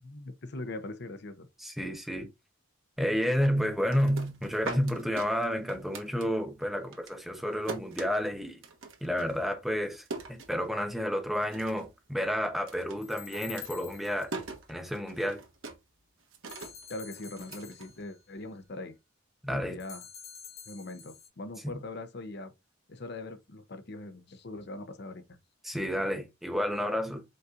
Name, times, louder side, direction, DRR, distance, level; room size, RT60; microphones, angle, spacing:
voice 1, 0.0-1.5 2.2-2.3 16.9-19.0 19.5-20.0 20.7-22.5 22.9-25.4 26.0-26.1, left 2 dB, 55° left, 0.7 m, -41 dB
voice 2, 1.6-2.3 3.0-8.6 9.0-14.3 14.7-15.4 19.4-19.8 25.6-27.2, equal, ahead, 0.7 m, -30 dB
sound 1, 3.7-6.6 6.9-11.1 11.4-12.0 12.2-18.5, right 3 dB, 80° right, 1.2 m, -43 dB
sound 2, 13.0-14.4 16.5-18.2 19.8-21.3, left 8 dB, 90° left, 1.6 m, -48 dB
5.4 x 4.0 x 2.4 m
head